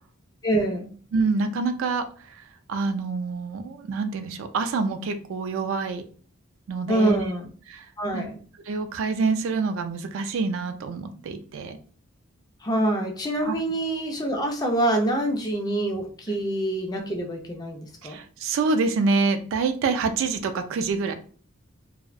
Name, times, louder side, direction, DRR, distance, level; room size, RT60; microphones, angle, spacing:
voice 1, 0.4-0.9 6.9-7.5 8.0-8.4 12.6-18.2, right 1 dB, 20° left, 2 dB, 0.3 m, -26 dB
voice 2, 1.1-2.1 2.4-2.5 2.7-6.0 6.7-7.3 7.7-7.9 8.1-8.3 8.7-11.8 13.4-13.6 16.3-16.4 18.0-21.1, right 4 dB, 70° right, 8 dB, 0.3 m, -26 dB
2.6 x 2.0 x 2.4 m, 0.43 s
head